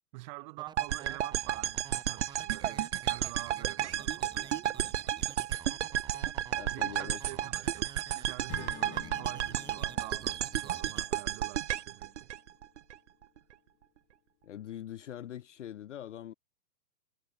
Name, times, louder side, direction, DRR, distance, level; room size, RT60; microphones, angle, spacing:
voice 1, 0.1-5.2 6.7-12.3, right 25 dB, 25° right, 2.8 m, -47 dB
sound 1, 0.6-11.0, right 7 dB, 10° right, 2.9 m, -50 dB
sound 2, 0.8-12.9, right 11 dB, 45° right, 0.7 m, -33 dB
voice 2, 6.5-7.2 14.4-16.3, left 11 dB, 45° left, 0.9 m, -43 dB
Acoustic guitar / Strum, 8.5-12.7, left 26 dB, 15° left, 1.1 m, -51 dB
hypercardioid pair, 165°, 50 cm